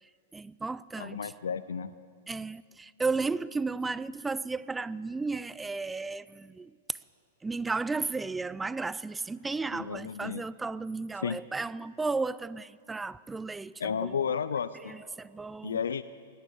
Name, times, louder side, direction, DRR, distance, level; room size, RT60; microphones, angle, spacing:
voice 1, 0.3-1.2 2.3-6.7 7.4-13.7 14.0-14.2 14.9-15.8, right 3 dB, 10° right, 0.3 m, -34 dB
voice 2, 1.0-1.9 9.7-10.5 11.2-11.4 13.8-15.0 15.6-16.0, left 7 dB, 80° left, 0.4 m, -32 dB
18.5 x 9.8 x 7.3 m
hypercardioid pair, 110°, 0 cm